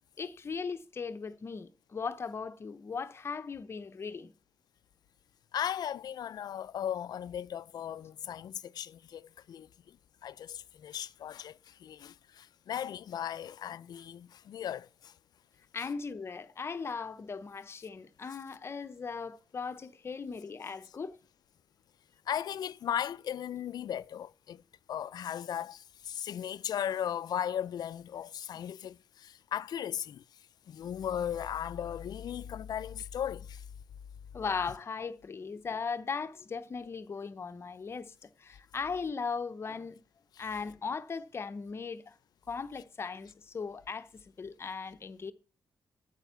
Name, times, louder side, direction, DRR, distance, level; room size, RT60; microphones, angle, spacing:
voice 1, 0.2-4.3 15.7-21.2 34.3-40.0 40.4-42.2 42.5-44.1 44.4-45.3, left 5 dB, 35° left, 0.8 m, -38 dB
voice 2, 5.5-9.7 10.2-15.1 15.8-15.9 22.3-24.6 24.9-30.2 30.7-33.6, left 9 dB, 65° left, 0.5 m, -37 dB
9.0 x 8.2 x 6.9 m
wide cardioid pair, 140°, 7 cm